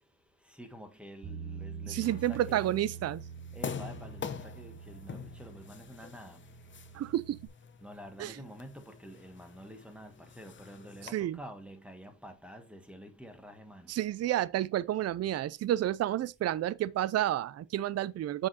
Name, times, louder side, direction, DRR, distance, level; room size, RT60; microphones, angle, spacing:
voice 1, 0.6-2.8 3.5-6.4 7.8-13.9, equal, 5° right, 1.4 m, -48 dB
Bass guitar, 1.2-7.5, right 6 dB, 65° right, 2.8 m, -45 dB
voice 2, 1.9-3.2 6.9-7.4 8.2-8.3 11.1-11.4 13.9-18.5, right 12 dB, 35° right, 0.4 m, -30 dB
sound 1, 2.0-11.1, left 7 dB, 25° left, 0.8 m, -46 dB
7.4 x 7.1 x 2.8 m
cardioid pair, 120°, 44 cm